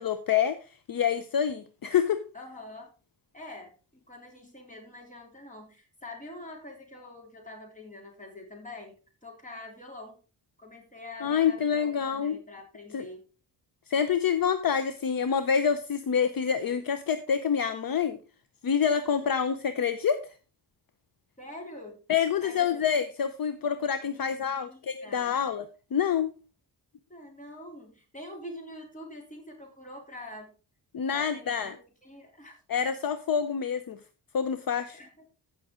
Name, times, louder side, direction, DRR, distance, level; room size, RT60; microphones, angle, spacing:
voice 1, 0.0-2.2 11.2-12.4 12.9-13.1 13.9-18.2 18.6-20.3 22.1-26.3 30.9-31.8 32.7-34.0 34.3-35.0, left 7 dB, 55° left, 11 dB, 0.7 m, -27 dB
voice 2, 2.3-2.9 3.3-8.9 9.2-10.1 10.6-13.2 21.4-22.0 22.4-22.7 24.1-25.4 27.1-30.5 31.1-31.7 32.0-32.6 34.9-35.1, left 1 dB, 15° left, 1 dB, 3.3 m, -45 dB
15.0 x 6.1 x 3.7 m, 0.34 s
wide cardioid pair, 145°, 43 cm